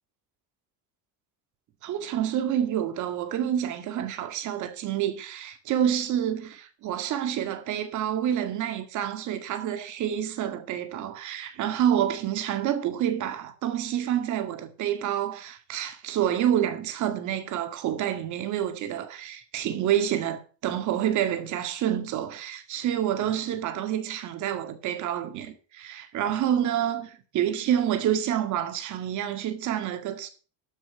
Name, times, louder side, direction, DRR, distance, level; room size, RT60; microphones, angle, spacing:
voice 1, 1.8-30.3, right 10 dB, 50° right, 2.0 m, -28 dB
13.0 x 6.0 x 6.8 m
cardioid pair, 155°, 37 cm